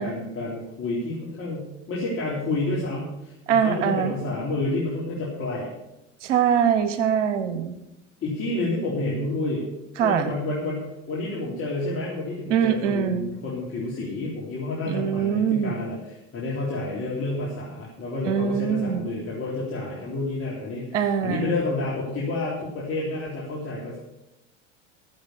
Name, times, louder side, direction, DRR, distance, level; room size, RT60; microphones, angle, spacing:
voice 1, 0.0-5.7 8.2-9.7 10.0-24.0, left 2 dB, 35° left, -5 dB, 3.7 m, -29 dB
voice 2, 3.5-4.1 6.2-7.8 10.0-10.3 12.5-13.3 14.9-15.7 18.2-19.0 20.9-21.5, right 8 dB, 75° right, 9 dB, 1.2 m, -23 dB
14.0 x 7.8 x 6.9 m, 0.92 s
hypercardioid pair, 75°, 37 cm